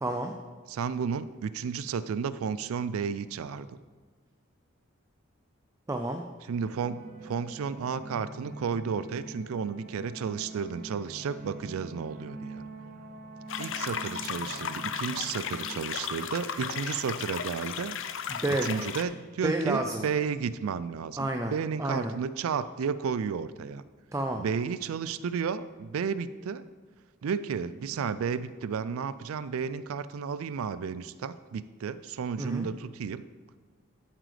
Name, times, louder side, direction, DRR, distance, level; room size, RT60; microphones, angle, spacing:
voice 1, 0.0-0.3 5.9-6.2 18.3-18.7 19.4-20.0 21.2-21.5 21.8-22.1 24.1-24.5 32.4-32.7, right 2 dB, 15° right, 5 dB, 0.4 m, -30 dB
voice 2, 0.7-3.8 6.5-12.6 13.6-18.0 18.6-23.8 24.4-26.7 27.2-33.2, right 6 dB, 80° right, 15 dB, 0.4 m, -32 dB
sound 1, 6.5-15.7, right 2 dB, 45° right, 1.1 m, -44 dB
sound 2, 13.5-19.0, left 7 dB, 60° left, 0.5 m, -35 dB
13.0 x 7.6 x 3.3 m, 1.4 s
head